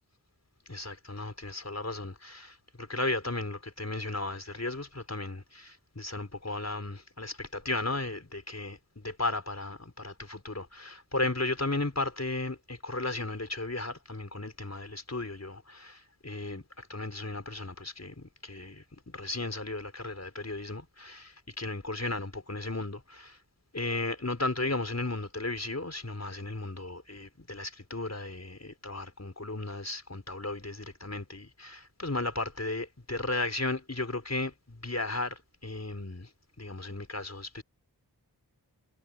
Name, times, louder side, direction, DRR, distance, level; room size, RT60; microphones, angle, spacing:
voice 1, 0.7-23.4 23.7-36.3 36.6-37.6, left 2 dB, 40° left, 4.5 m, -35 dB
wide cardioid pair, 55°, 41 cm